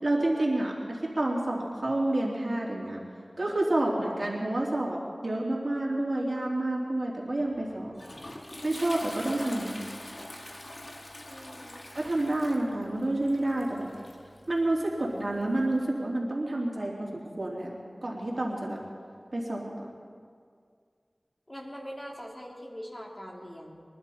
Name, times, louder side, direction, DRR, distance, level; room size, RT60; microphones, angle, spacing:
voice 1, 0.0-3.0 3.4-7.9 8.6-9.8 11.9-13.9 14.5-18.8 19.3-19.9, right 1 dB, 55° right, -4 dB, 3.1 m, -29 dB
Toilet flush, 7.4-15.8, left 1 dB, 60° left, 1.9 m, -44 dB
voice 2, 11.3-11.8 21.5-23.8, equal, 30° left, -2 dB, 2.8 m, -42 dB
22.5 x 11.5 x 4.3 m, 2.1 s
wide cardioid pair, 45°, 0 cm